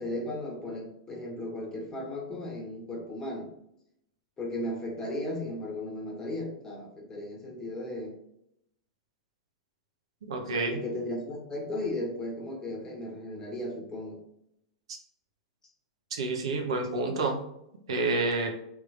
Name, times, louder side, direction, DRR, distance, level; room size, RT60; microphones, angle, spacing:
voice 1, 0.0-3.6 4.4-8.2 10.7-14.2, left 1 dB, 20° left, 0 dB, 1.1 m, -36 dB
voice 2, 10.3-10.8 16.1-17.4 17.9-18.5, right 3 dB, 70° right, 3 dB, 0.8 m, -28 dB
3.5 x 3.0 x 2.4 m, 0.79 s
hypercardioid pair, 100°, 3 cm